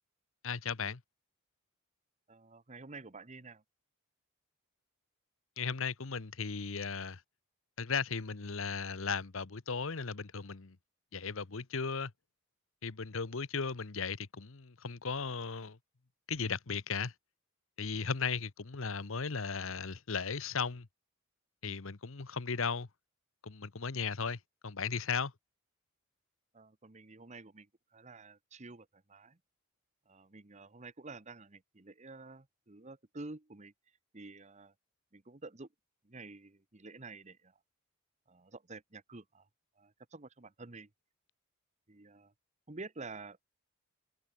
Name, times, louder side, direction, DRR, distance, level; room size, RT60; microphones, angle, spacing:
voice 1, 0.4-1.0 5.6-7.2 7.8-10.8 11.1-12.1 12.8-15.8 16.3-17.1 17.8-20.9 21.6-22.9 23.4-25.3, left 5 dB, 65° left, 1.0 m, -36 dB
voice 2, 2.3-3.6 26.5-29.4 30.1-33.7 34.1-34.7 35.1-35.7 36.0-37.6 38.3-39.5 39.8-40.9 41.9-42.3 42.7-43.4, right 3 dB, 30° right, 1.1 m, -50 dB
head